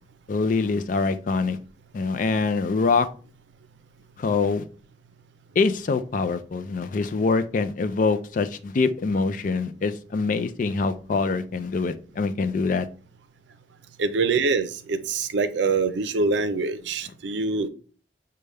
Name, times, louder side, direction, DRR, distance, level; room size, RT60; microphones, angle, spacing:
voice 1, 0.3-1.6 1.9-3.1 4.2-4.6 5.6-12.9, left 4 dB, 45° left, 0.4 m, -24 dB
voice 2, 14.0-17.7, right 4 dB, 85° right, 0.5 m, -24 dB
6.3 x 2.2 x 3.3 m
head